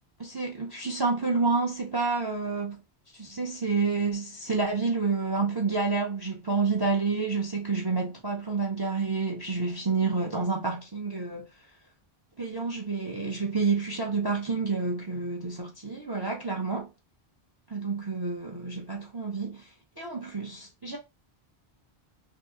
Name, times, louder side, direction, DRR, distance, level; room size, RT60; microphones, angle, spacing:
voice 1, 0.2-2.8 3.1-11.5 12.4-16.9 17.7-19.7 20.0-21.0, right 4 dB, 30° right, 0.5 m, -29 dB
2.7 x 2.3 x 3.6 m
omnidirectional pair, 1.0 m